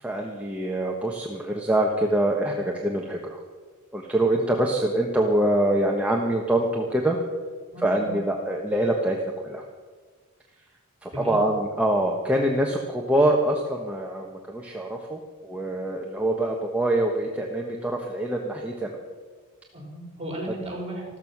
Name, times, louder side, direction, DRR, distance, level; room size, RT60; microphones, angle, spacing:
voice 1, 0.0-3.4 3.9-7.2 7.8-9.6 11.0-19.0, right 1 dB, 5° right, -1 dB, 1.2 m, -25 dB
voice 2, 7.7-8.2 11.1-11.4 19.7-21.0, right 1 dB, 25° right, -1 dB, 5.0 m, -35 dB
14.0 x 14.0 x 6.1 m, 1.4 s
head